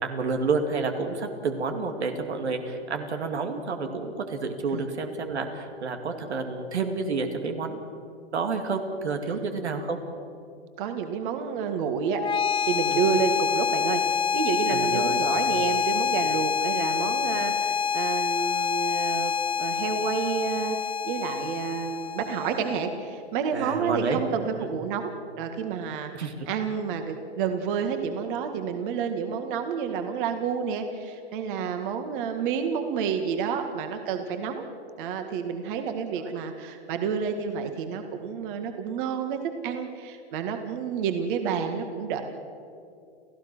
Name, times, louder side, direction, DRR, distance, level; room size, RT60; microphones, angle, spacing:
voice 1, 0.0-7.8 8.3-10.0 12.9-13.0 14.7-15.2 23.5-24.2 24.6-24.7 26.1-26.3, right 4 dB, 85° right, 5 dB, 2.6 m, -29 dB
voice 2, 10.8-12.2 12.6-19.3 19.6-34.7 35.0-42.2, right 6 dB, 50° right, 6 dB, 2.1 m, -29 dB
sound 1, 12.1-23.1, left 7 dB, 15° left, 0.9 m, -27 dB
29.5 x 15.5 x 6.3 m, 2.5 s
hypercardioid pair, 125°, 32 cm